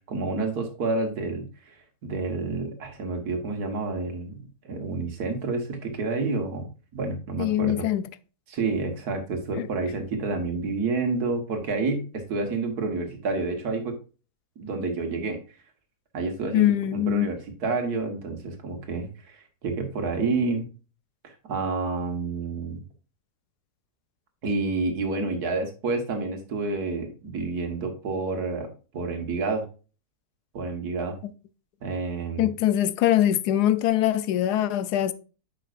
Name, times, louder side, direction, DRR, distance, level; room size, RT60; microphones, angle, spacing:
voice 1, 0.1-1.8 2.0-7.8 8.5-14.0 14.6-15.4 16.1-20.7 21.2-22.8 24.4-29.7 30.5-31.2 31.8-32.5, right 3 dB, 75° right, 1.9 m, -29 dB
voice 2, 7.4-8.1 9.5-9.7 16.5-17.3 32.4-35.1, left 12 dB, 85° left, 1.1 m, -23 dB
9.2 x 5.7 x 2.5 m
omnidirectional pair, 1.7 m